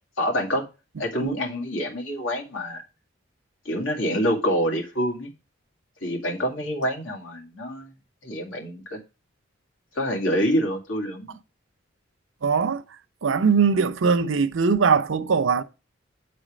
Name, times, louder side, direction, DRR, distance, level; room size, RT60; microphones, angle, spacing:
voice 1, 0.2-0.6 1.0-2.8 3.7-5.3 6.0-7.9 8.2-9.0 9.9-11.4, equal, 85° left, 2.1 m, -26 dB
voice 2, 12.4-12.8 13.2-15.6, right 5 dB, 75° right, 0.6 m, -21 dB
8.2 x 4.2 x 5.0 m
head